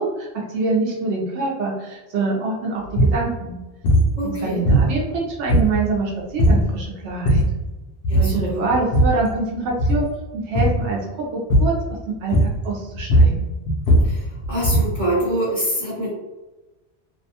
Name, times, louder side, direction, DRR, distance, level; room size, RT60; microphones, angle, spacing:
voice 1, 0.0-3.6 4.4-7.4 8.1-10.1 10.3-11.7 12.1-13.5, right 3 dB, 90° right, -2 dB, 0.9 m, -25 dB
sound 1, 2.9-3.2 3.8-4.1 4.6-5.2 5.5-6.0 6.4-6.7 7.1-7.6 8.0-8.4 8.7-9.3 9.7-10.1 10.5-10.9 11.5-11.8 12.3-12.7 13.0-15.0, equal, 70° left, 0.8 m, -18 dB
voice 2, 4.2-4.6 8.1-8.6 14.0-16.1, right 1 dB, 40° right, -9 dB, 1.0 m, -25 dB
2.6 x 2.1 x 2.7 m, 1.1 s
omnidirectional pair, 1.1 m